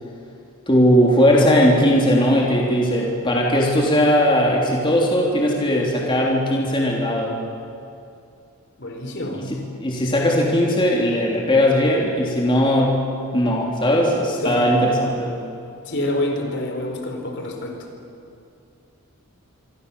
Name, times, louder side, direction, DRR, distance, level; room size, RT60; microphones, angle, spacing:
voice 1, 0.7-7.4 9.3-13.0 13.3-15.4, equal, 20° left, -2 dB, 3.3 m, -18 dB
voice 2, 8.8-9.5 14.4-14.7 15.8-17.9, left 1 dB, 50° left, 3 dB, 4.0 m, -27 dB
26.0 x 25.5 x 7.0 m, 2.6 s
head